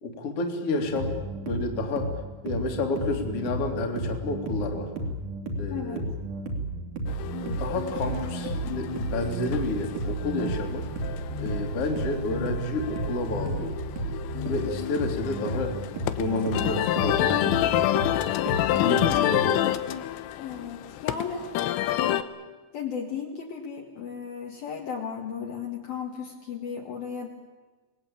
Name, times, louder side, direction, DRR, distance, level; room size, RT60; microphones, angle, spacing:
voice 1, 0.0-2.1 2.4-4.9 5.6-6.0 7.5-10.8 11.4-13.7 14.5-15.8 16.1-17.9 18.8-19.6, left 2 dB, 35° left, 4 dB, 3.1 m, -30 dB
sound 1, 0.8-19.2, right 1 dB, 45° right, 3.9 m, -33 dB
voice 2, 5.7-6.1 19.1-19.3 20.4-21.5 22.7-27.3, left 6 dB, 55° left, 0 dB, 3.3 m, -35 dB
sound 2, 7.1-22.2, left 13 dB, 85° left, 3.6 m, -29 dB
27.5 x 19.5 x 8.7 m, 1.3 s
omnidirectional pair, 5.8 m